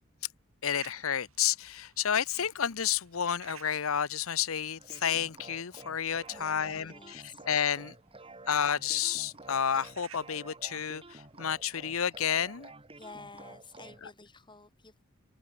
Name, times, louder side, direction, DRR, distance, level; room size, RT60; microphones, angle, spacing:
voice 1, 0.6-7.9 8.5-12.7, left 8 dB, 75° left, 0.8 m, -31 dB
sound 1, 0.7-12.5, right 8 dB, 90° right, 3.4 m, -59 dB
sound 2, 4.8-14.0, right 2 dB, 25° right, 5.6 m, -51 dB
voice 2, 6.3-7.4 13.0-15.0, left 3 dB, 25° left, 5.4 m, -51 dB
open air
head